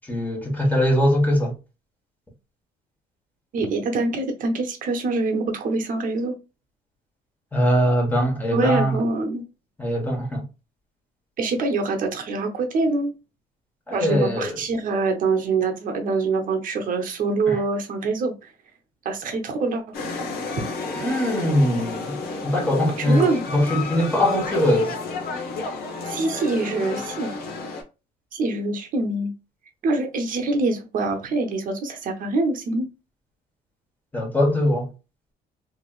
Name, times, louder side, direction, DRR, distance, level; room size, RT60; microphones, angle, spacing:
voice 1, 0.1-1.5 7.5-9.0 9.8-10.4 13.9-14.6 17.5-17.6 21.0-22.2 22.4-25.0 34.1-34.9, equal, 10° left, 1.3 m, -21 dB
voice 2, 3.5-6.4 8.5-9.4 11.4-13.1 13.9-18.3 19.0-19.8 23.0-23.4 26.1-27.3 28.3-29.3 29.8-32.9, right 3 dB, 55° right, 0.8 m, -24 dB
sound 1, 19.9-27.8, left 3 dB, 65° left, 0.9 m, -31 dB
3.1 x 2.9 x 2.4 m
cardioid pair, 110°, 17 cm